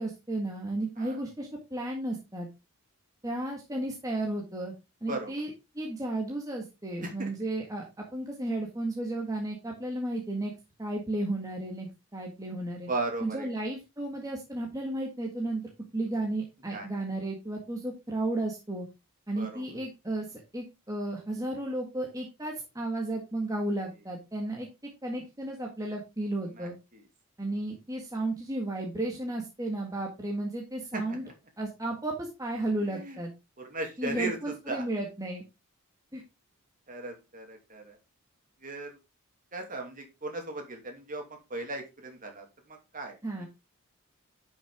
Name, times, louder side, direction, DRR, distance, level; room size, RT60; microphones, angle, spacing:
voice 1, 0.0-2.5 3.2-4.7 5.0-10.5 10.8-12.9 13.2-15.6 15.9-18.8 19.3-24.7 25.0-26.8 27.4-31.2 31.6-33.3 34.0-35.5 36.1-36.2 43.2-43.5, right 1 dB, 15° right, 0 dB, 1.7 m, -33 dB
voice 2, 12.9-13.5 16.7-17.0 19.3-19.6 26.5-27.0 30.9-31.2 32.8-33.2 33.6-34.4 34.7-34.8 36.9-38.0 38.6-39.0 39.5-41.2 41.5-43.5, right 2 dB, 35° right, 3 dB, 2.7 m, -37 dB
11.0 x 6.0 x 3.6 m, 0.25 s
head